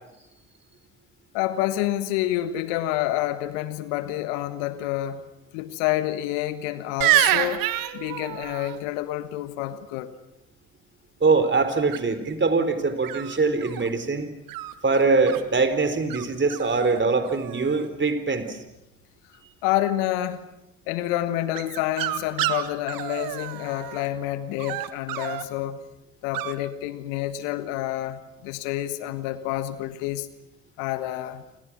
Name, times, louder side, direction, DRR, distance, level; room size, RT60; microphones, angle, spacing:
voice 1, 1.3-5.3 5.5-7.7 7.9-10.1 19.6-20.4 20.9-25.8 26.2-30.3 30.8-31.4, left 14 dB, 75° left, 1.5 m, -28 dB
sound 1, 7.0-8.8 11.9-12.3 13.0-13.9 14.5-15.4 16.1-16.2 16.5-17.0 17.2-17.9 21.5-24.1 24.6-25.5 26.3-26.5, right 14 dB, 65° right, 1.6 m, -28 dB
voice 2, 11.2-14.3 14.8-18.6, right 4 dB, 30° right, 4.1 m, -23 dB
28.5 x 26.0 x 6.2 m
hypercardioid pair, 50°, 37 cm